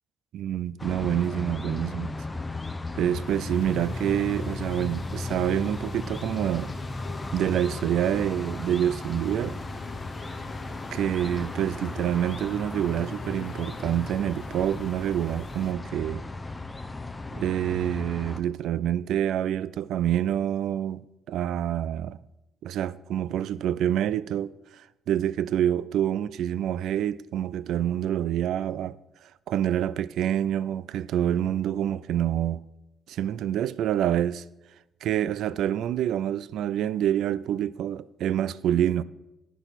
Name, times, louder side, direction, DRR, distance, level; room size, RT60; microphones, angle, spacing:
voice 1, 0.3-2.1 3.0-6.7 7.3-9.6 10.9-16.2 17.3-22.2 22.6-24.5 25.1-29.0 29.5-32.6 33.1-34.4 35.0-39.0, right 10 dB, 80° right, 0.3 m, -27 dB
sound 1, 0.8-18.4, left 2 dB, 20° left, 0.7 m, -35 dB
sound 2, 3.2-15.7, left 5 dB, 75° left, 1.4 m, -47 dB
10.0 x 9.1 x 4.1 m
cardioid pair, 90°, 0 cm